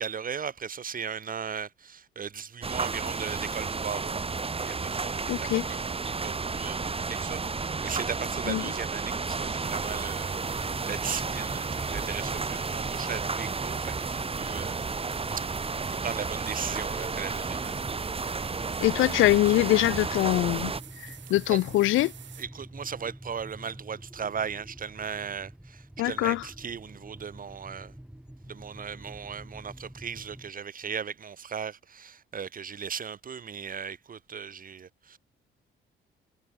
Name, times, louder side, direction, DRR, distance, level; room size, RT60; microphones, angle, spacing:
voice 1, 0.0-4.2 4.6-6.0 6.2-14.8 15.3-15.5 15.9-17.9 21.5-21.6 22.4-27.9 28.4-35.2, right 7 dB, 45° right, 2.5 m, -37 dB
sound 1, 2.6-20.8, right 4 dB, 30° right, 3.1 m, -32 dB
voice 2, 5.3-5.6 8.5-8.7 18.8-20.7 21.3-22.1 26.0-26.4, left 16 dB, 85° left, 1.0 m, -23 dB
sound 2, 9.6-22.5, right 10 dB, 65° right, 4.4 m, -48 dB
sound 3, 10.5-30.5, right 1 dB, 5° right, 3.7 m, -46 dB
cardioid pair, 90°, 20 cm